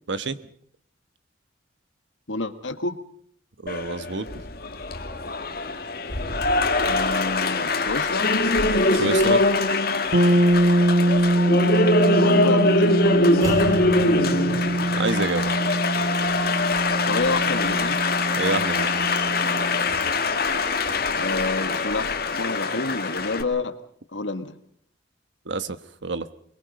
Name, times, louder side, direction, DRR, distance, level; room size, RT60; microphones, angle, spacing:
voice 1, 2.3-3.0 6.8-8.3 12.1-13.6 13.9-14.6 17.1-18.0 21.1-23.8 24.1-24.5, left 3 dB, 80° left, 10 dB, 1.7 m, -29 dB
voice 2, 3.6-4.3 8.9-9.4 14.9-15.5 18.4-19.1 25.5-25.8 26.0-26.3, right 3 dB, 70° right, 13 dB, 1.2 m, -27 dB
Applause, 3.7-23.4, left 2 dB, 50° left, 2.2 m, -23 dB
sound 1, 10.1-19.9, right 1 dB, 55° right, 1.4 m, -23 dB
sound 2, 12.7-13.0 13.3-16.1 17.2-17.3, right 1 dB, 20° right, 5.0 m, -36 dB
23.5 x 23.0 x 5.3 m, 0.62 s
head